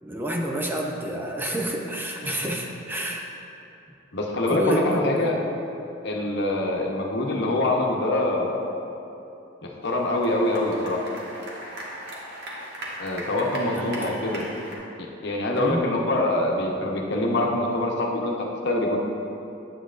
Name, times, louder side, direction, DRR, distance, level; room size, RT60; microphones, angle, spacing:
voice 1, 0.0-3.3 4.5-5.4 13.3-14.2 15.6-15.9, right 1 dB, 10° right, 0 dB, 0.5 m, -29 dB
voice 2, 4.1-5.3 6.0-8.5 9.6-11.0 13.0-14.4 15.0-19.0, left 1 dB, 60° left, 0 dB, 0.9 m, -24 dB
sound 1, 9.8-14.8, right 1 dB, 60° right, 1.3 m, -38 dB
9.6 x 7.9 x 2.5 m, 2.8 s
head